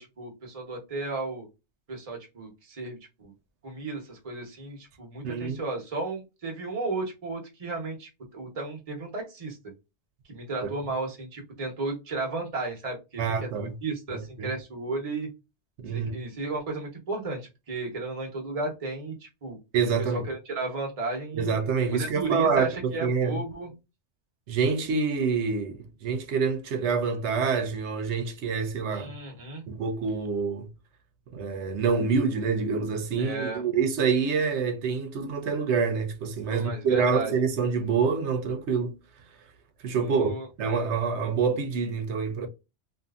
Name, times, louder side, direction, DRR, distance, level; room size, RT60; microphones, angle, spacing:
voice 1, 0.0-1.5 1.9-3.3 3.6-9.6 10.3-15.3 15.9-19.6 20.0-21.6 21.9-23.7 28.9-29.6 33.2-33.6 36.5-37.4 40.0-40.5, right 3 dB, 35° right, 1.0 m, -34 dB
voice 2, 5.2-5.6 10.6-10.7 13.2-13.8 14.1-14.5 15.8-16.1 19.7-20.2 21.3-23.4 24.5-29.1 29.7-30.7 31.3-38.9 39.8-40.3 40.6-42.5, right 5 dB, 80° right, 1.0 m, -26 dB
2.7 x 2.5 x 2.3 m
omnidirectional pair, 1.1 m